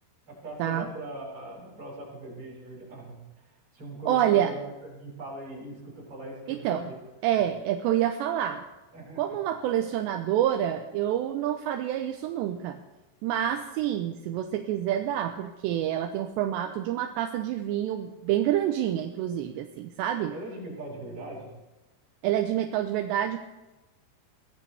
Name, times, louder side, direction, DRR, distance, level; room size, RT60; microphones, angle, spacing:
voice 1, 0.3-3.2 3.7-7.0 8.9-9.4 20.3-21.5, right 1 dB, 30° right, -4 dB, 8.1 m, -40 dB
voice 2, 4.1-4.5 6.5-6.8 7.2-8.6 9.2-12.8 13.2-20.3 22.2-23.4, right 11 dB, 80° right, 5 dB, 2.9 m, -27 dB
22.5 x 17.0 x 3.5 m, 1.0 s
omnidirectional pair, 5.2 m